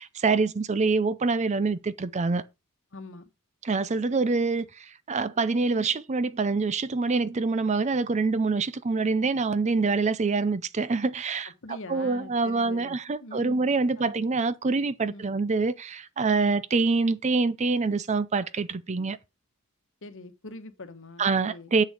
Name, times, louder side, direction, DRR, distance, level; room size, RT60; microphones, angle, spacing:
voice 1, 0.2-2.4 3.7-4.6 5.1-11.4 11.9-15.7 16.2-19.2 21.2-21.8, right 4 dB, 30° right, 0.5 m, -25 dB
voice 2, 2.9-3.3 11.4-13.7 14.0-14.2 15.1-15.2 16.4-16.5 20.0-21.7, left 2 dB, 60° left, 1.2 m, -44 dB
7.9 x 6.5 x 4.9 m
head